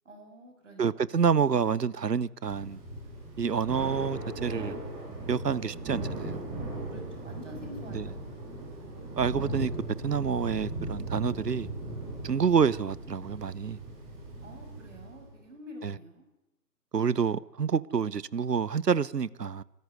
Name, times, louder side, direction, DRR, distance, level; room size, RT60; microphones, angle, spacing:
voice 1, 0.0-1.0 6.9-8.6 14.4-16.2, left 1 dB, 45° right, 7.4 m, -47 dB
voice 2, 0.8-2.8 3.4-4.8 5.3-6.4 7.9-8.1 9.2-9.7 10.0-11.7 12.2-13.8 15.8-15.9 16.9-19.6, right 6 dB, 70° right, 0.9 m, -28 dB
Thunder / Rain, 2.4-15.3, right 2 dB, 10° right, 2.3 m, -38 dB
25.0 x 14.0 x 9.5 m
figure-of-eight pair, 160°, 50 cm